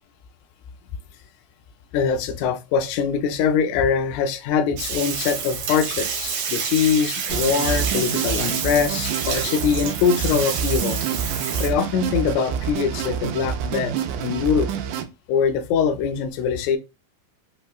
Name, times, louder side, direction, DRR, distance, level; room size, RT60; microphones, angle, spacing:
voice 1, 1.9-11.0 11.6-13.9 14.2-14.7 15.3-16.8, left 6 dB, 80° left, 1.8 m, -23 dB
Bathtub (filling or washing), 4.8-11.7, right 6 dB, 75° right, 2.0 m, -28 dB
sound 1, 7.3-15.0, right 8 dB, 90° right, 2.0 m, -28 dB
5.1 x 2.1 x 2.3 m
omnidirectional pair, 3.4 m